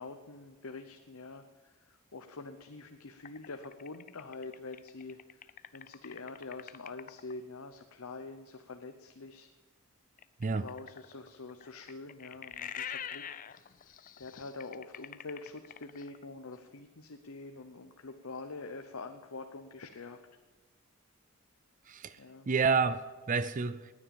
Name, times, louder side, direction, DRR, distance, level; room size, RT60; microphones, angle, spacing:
voice 1, 0.0-9.5 10.5-13.4 14.2-20.2 22.2-22.5, left 3 dB, 75° left, 6 dB, 0.9 m, -45 dB
sound 1, 3.2-7.3 10.2-16.2, left 8 dB, 40° left, 0.5 m, -45 dB
voice 2, 21.9-22.2 22.5-23.9, right 5 dB, 35° right, 15 dB, 0.4 m, -29 dB
19.5 x 9.9 x 7.1 m, 1.3 s
head